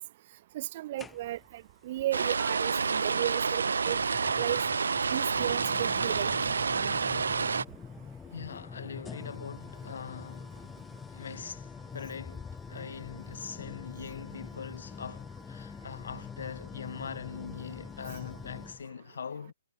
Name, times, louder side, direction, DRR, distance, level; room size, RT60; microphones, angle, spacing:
voice 1, 0.5-1.4 1.8-4.6 5.1-6.3, right 15 dB, 40° right, 1.0 m, -34 dB
sound 1, 1.0-1.6 3.0-3.1 3.8-18.9, left 5 dB, 10° left, 1.4 m, -45 dB
sound 2, 2.1-7.6, right 5 dB, 90° right, 0.5 m, -29 dB
voice 2, 8.3-10.6 11.1-19.5, left 6 dB, 75° left, 6.8 m, -42 dB
hypercardioid pair, 155°, 0 cm